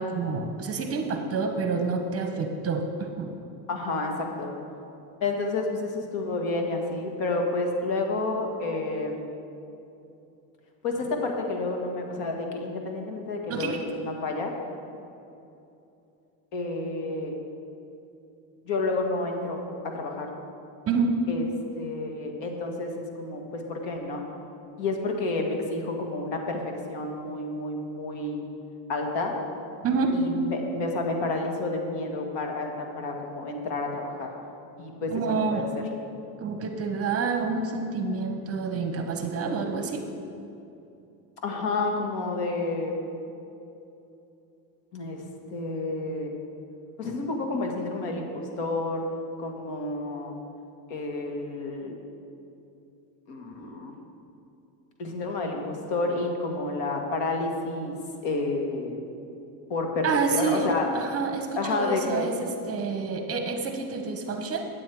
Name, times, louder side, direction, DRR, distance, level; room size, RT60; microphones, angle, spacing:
voice 1, 0.0-3.3 13.5-13.8 20.9-21.1 29.8-30.1 35.1-35.7 36.4-40.1 60.0-64.6, right 4 dB, 30° right, 5 dB, 0.9 m, -28 dB
voice 2, 3.7-4.5 5.2-9.3 10.8-14.5 16.5-17.3 18.6-20.3 21.3-21.5 21.8-24.3 24.8-26.6 26.9-28.4 28.9-29.4 30.1-34.3 34.8-35.9 41.4-43.1 44.9-46.3 47.0-49.0 49.4-50.4 50.9-51.9 53.3-53.9 55.0-58.0 58.2-59.0 59.7-60.9 61.6-62.3, left 2 dB, 65° left, 2 dB, 1.8 m, -30 dB
9.3 x 8.6 x 4.6 m, 2.8 s
supercardioid pair, 125°, 48 cm